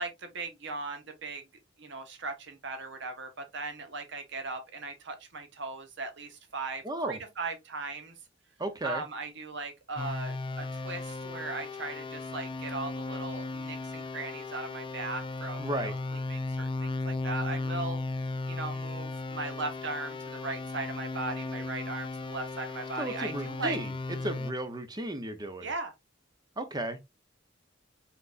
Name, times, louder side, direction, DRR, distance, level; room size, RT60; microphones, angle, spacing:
voice 1, 0.0-1.4 1.8-8.1 8.8-18.0 18.5-23.8 25.6-25.9, right 3 dB, 65° right, 1.2 m, -38 dB
voice 2, 6.8-7.2 8.6-9.0 15.6-15.9 23.0-23.9 24.2-25.7 26.6-27.0, right 1 dB, 20° right, 0.7 m, -34 dB
sound 1, 10.0-24.5, left 3 dB, 25° left, 0.3 m, -36 dB
4.4 x 3.9 x 2.5 m
head